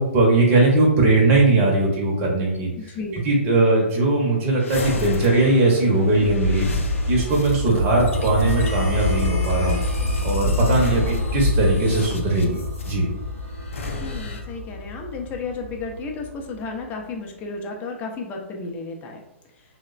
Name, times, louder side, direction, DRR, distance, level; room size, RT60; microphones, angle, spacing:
voice 1, 0.0-2.9 3.2-6.7 7.1-9.8 10.2-12.6 12.9-13.1, right 2 dB, 30° right, -2 dB, 0.6 m, -19 dB
voice 2, 2.8-3.3 14.0-19.2, left 3 dB, 20° left, 1 dB, 0.4 m, -33 dB
sound 1, 4.6-12.9 13.6-14.4, left 2 dB, 75° left, 0.5 m, -28 dB
sound 2, 6.9-16.8, left 2 dB, 90° right, 0.4 m, -28 dB
3.0 x 2.0 x 2.4 m, 0.91 s
figure-of-eight pair, 120°, 7 cm